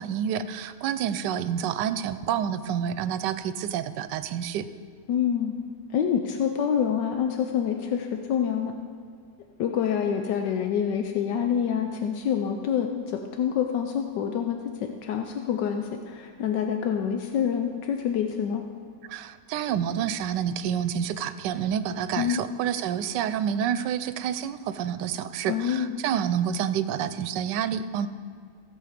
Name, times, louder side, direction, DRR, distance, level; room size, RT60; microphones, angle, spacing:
voice 1, 0.0-4.7 19.1-28.1, right 9 dB, 85° right, 13 dB, 1.2 m, -28 dB
voice 2, 5.1-5.5 5.9-8.8 9.6-18.6 22.2-22.4 25.5-25.9, left 8 dB, 85° left, 4 dB, 1.3 m, -27 dB
16.0 x 7.3 x 5.0 m, 2.1 s
omnidirectional pair, 1.9 m